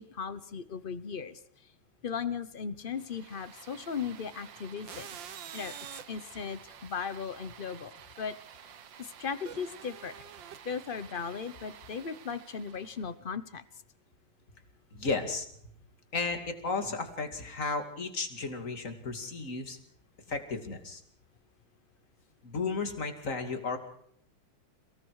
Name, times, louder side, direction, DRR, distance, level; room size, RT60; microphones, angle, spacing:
voice 1, 0.0-1.4 2.0-5.2 5.5-5.7 6.1-8.3 9.0-10.2 10.6-13.6, left 6 dB, 55° left, 14 dB, 0.6 m, -37 dB
sound 1, 2.9-13.1, right 8 dB, 65° right, 1.8 m, -49 dB
voice 2, 14.9-15.5 16.1-19.8 20.3-21.0 22.4-23.8, left 4 dB, 40° left, 6 dB, 2.8 m, -34 dB
29.5 x 18.5 x 4.8 m, 0.67 s
omnidirectional pair, 2.3 m